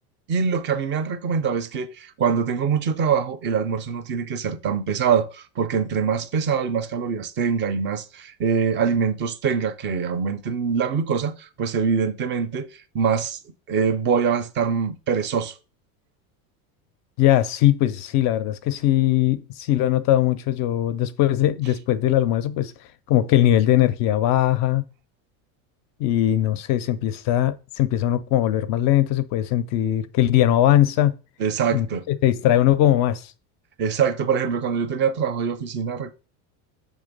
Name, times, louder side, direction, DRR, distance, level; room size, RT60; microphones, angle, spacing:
voice 1, 0.3-12.7 12.9-13.4 13.7-15.5 31.4-32.0 33.8-36.1, right 6 dB, 25° right, 0.4 m, -24 dB
voice 2, 17.2-22.7 23.1-24.8 26.0-31.2 31.7-33.3, left 12 dB, 40° left, 0.4 m, -20 dB
6.4 x 3.6 x 5.1 m
supercardioid pair, 145°, 45 cm